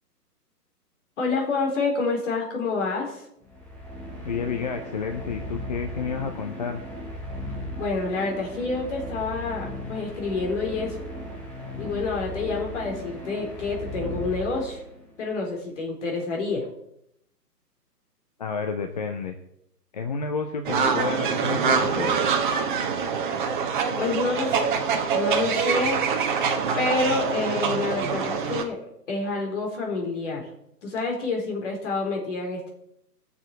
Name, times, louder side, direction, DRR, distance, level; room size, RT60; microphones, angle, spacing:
voice 1, 1.2-3.2 7.8-11.1 11.8-14.8 15.2-16.7 23.9-24.8 25.1-26.0 26.8-28.8 29.1-30.4 30.8-32.7, left 3 dB, 45° left, 0 dB, 4.4 m, -28 dB
sound 1, 3.4-15.1, equal, 5° left, 1.2 m, -37 dB
voice 2, 4.2-6.8 18.4-19.4 19.9-22.3, left 5 dB, 25° left, 5 dB, 0.7 m, -30 dB
sound 2, 20.7-28.6, right 6 dB, 30° right, 1.2 m, -25 dB
18.5 x 7.0 x 4.9 m, 0.77 s
figure-of-eight pair, 135°, 48 cm